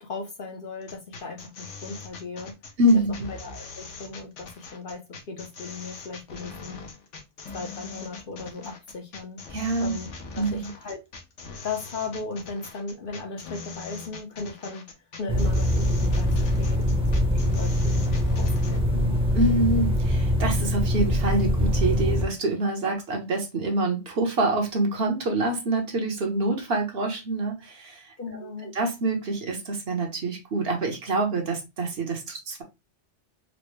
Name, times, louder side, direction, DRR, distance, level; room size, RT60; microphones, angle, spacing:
voice 1, 0.0-2.5 3.3-6.8 7.5-9.4 9.8-10.1 10.4-11.0 11.6-14.9 15.2-19.2 28.2-28.8, left 3 dB, 55° left, 0.8 m, -37 dB
sound 1, 0.8-18.8, left 4 dB, 80° left, 1.1 m, -41 dB
voice 2, 2.8-3.3 9.5-10.0 10.4-10.6 19.3-28.1 28.4-28.5 28.7-32.6, right 2 dB, 55° right, 1.1 m, -26 dB
sound 2, 15.3-22.2, equal, 5° right, 0.6 m, -23 dB
4.2 x 2.1 x 3.0 m
omnidirectional pair, 1.2 m